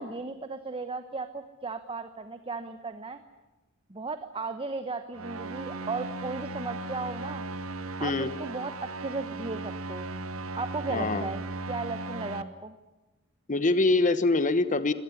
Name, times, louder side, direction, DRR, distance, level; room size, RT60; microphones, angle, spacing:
voice 1, 0.0-3.2 3.9-7.4 8.0-10.1 10.5-11.4 11.7-12.7, right 3 dB, 25° right, 10 dB, 0.9 m, -36 dB
sound 1, 5.1-12.4, right 2 dB, 85° right, 1.2 m, -37 dB
voice 2, 10.9-11.3 13.5-14.9, left 2 dB, 40° left, 13 dB, 1.2 m, -24 dB
24.0 x 18.0 x 9.8 m, 1.1 s
head